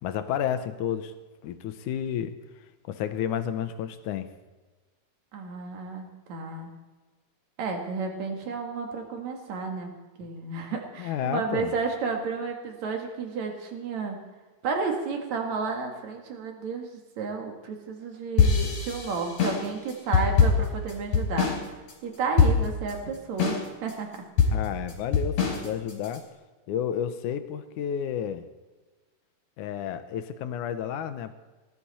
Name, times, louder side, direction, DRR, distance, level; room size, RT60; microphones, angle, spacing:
voice 1, 0.0-1.1 1.4-2.4 2.9-4.3 11.0-11.7 24.5-26.2 26.7-28.4 29.6-31.3, left 9 dB, 75° left, 10 dB, 2.1 m, -31 dB
voice 2, 5.3-6.7 7.6-9.9 10.2-14.2 14.6-16.9 17.2-21.5 22.0-24.2, right 4 dB, 60° right, 2 dB, 3.1 m, -32 dB
sound 1, 18.4-21.6 21.9-22.0 22.4-22.9 23.4-23.9 24.4-26.2, left 5 dB, 55° left, 4.4 m, -23 dB
19.5 x 12.0 x 4.2 m, 1.2 s
omnidirectional pair, 3.9 m